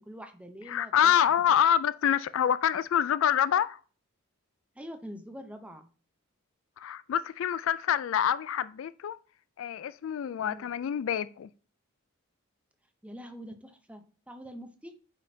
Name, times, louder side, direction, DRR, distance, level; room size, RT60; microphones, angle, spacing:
voice 1, 0.0-1.2 4.8-5.9 10.4-10.7 13.0-14.9, equal, 5° right, 0.7 m, -44 dB
voice 2, 0.7-3.8 6.8-9.2 9.6-11.5, left 9 dB, 60° left, 0.3 m, -26 dB
8.2 x 5.2 x 2.7 m
head